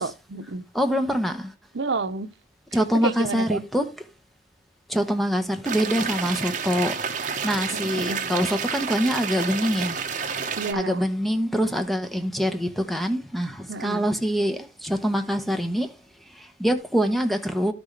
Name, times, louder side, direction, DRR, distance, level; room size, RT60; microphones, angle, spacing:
voice 1, 0.0-0.6 1.8-2.3 3.0-3.6 8.0-8.2 10.6-11.0 13.7-14.1, right 3 dB, 80° right, 0.7 m, -29 dB
voice 2, 0.7-1.5 2.7-4.1 4.9-10.0 10.7-15.9 16.3-17.7, equal, ahead, 0.8 m, -25 dB
sound 1, 5.6-10.7, right 6 dB, 45° right, 1.1 m, -30 dB
12.0 x 6.1 x 3.3 m
head